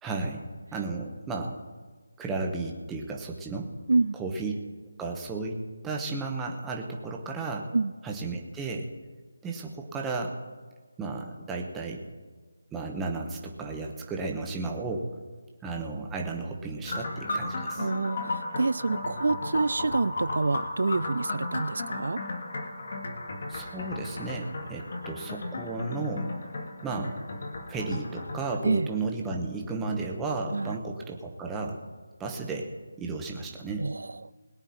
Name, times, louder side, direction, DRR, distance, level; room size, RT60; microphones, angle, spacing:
voice 1, 0.0-0.4 0.7-1.6 2.2-3.7 4.1-4.5 5.0-7.7 8.0-8.9 9.4-10.4 11.0-12.0 12.7-15.1 15.6-17.9 23.5-26.3 26.8-27.2 27.7-31.8 32.2-32.7 33.0-33.9, right 3 dB, 5° right, 0 dB, 0.9 m, -33 dB
sound 1, 16.9-28.6, left 2 dB, 45° left, 1.6 m, -35 dB
voice 2, 17.8-22.2 28.6-28.9 30.5-30.8 33.8-34.3, right 3 dB, 65° right, 17 dB, 0.3 m, -27 dB
21.5 x 9.2 x 4.3 m, 1.4 s
figure-of-eight pair, 175°, 0 cm